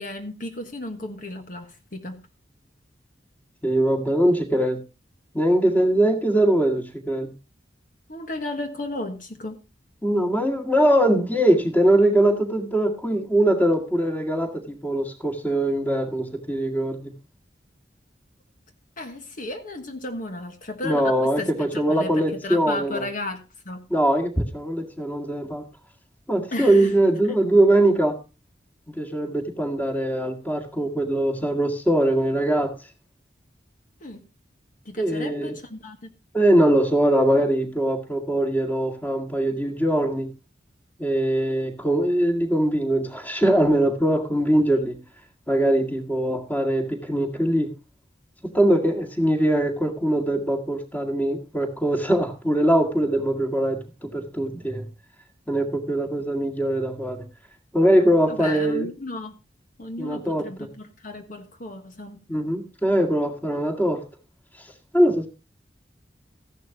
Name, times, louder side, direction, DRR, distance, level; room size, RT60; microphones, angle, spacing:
voice 1, 0.0-2.2 8.1-9.6 19.0-23.8 26.5-26.9 34.0-34.2 34.8-36.1 58.3-59.4 59.8-62.2, left 2 dB, 50° left, 5 dB, 1.4 m, -34 dB
voice 2, 3.6-4.8 5.3-7.3 10.0-17.1 20.8-23.1 23.9-25.7 26.3-28.2 28.9-32.8 35.0-35.5 36.3-40.3 41.0-45.0 45.5-47.7 48.4-54.9 55.5-57.2 57.7-58.9 60.0-60.7 62.3-64.0 64.9-65.3, right 1 dB, 10° left, 4 dB, 1.9 m, -22 dB
14.5 x 11.0 x 2.8 m, 0.30 s
head